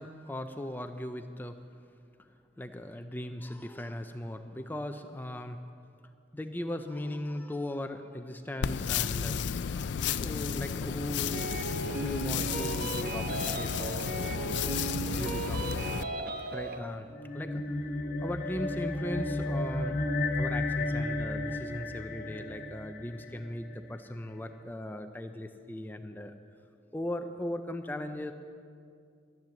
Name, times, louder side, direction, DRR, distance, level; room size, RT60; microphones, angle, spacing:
voice 1, 0.0-1.6 2.2-2.3 2.6-5.6 6.3-11.5 12.0-14.8 15.2-15.7 16.5-20.0 20.3-26.3 26.9-28.3, left 1 dB, 10° left, 7 dB, 0.4 m, -38 dB
sound 1, 8.6-16.0, left 7 dB, 75° left, 0.4 m, -33 dB
sound 2, 11.3-16.8, right 3 dB, 50° right, 0.9 m, -36 dB
sound 3, 17.1-23.8, left 2 dB, 50° left, 1.2 m, -33 dB
12.0 x 10.5 x 7.1 m, 2.3 s
head